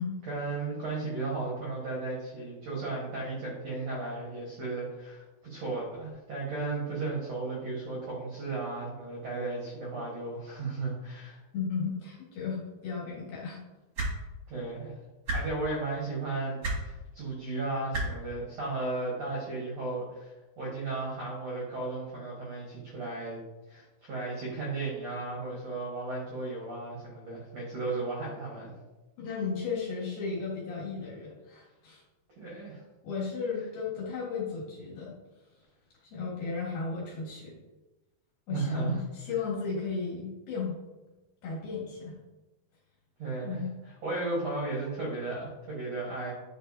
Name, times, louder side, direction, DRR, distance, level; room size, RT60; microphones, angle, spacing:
voice 1, 0.2-11.4 14.5-14.9 15.3-23.4 23.7-28.7 32.4-32.8 38.5-39.0 43.2-43.6 44.0-46.3, right 3 dB, 75° right, -4 dB, 1.5 m, -35 dB
voice 2, 11.5-13.6 29.2-32.0 33.0-35.1 36.1-37.6 38.5-40.8 41.4-42.1 43.4-43.7, left 5 dB, 60° left, -4 dB, 3.0 m, -34 dB
sound 1, 13.9-14.1 15.2-15.4 16.6-16.8 17.9-18.0 19.3-19.4, right 2 dB, 50° right, 1.1 m, -29 dB
9.9 x 4.7 x 2.7 m, 1.1 s
omnidirectional pair, 5.2 m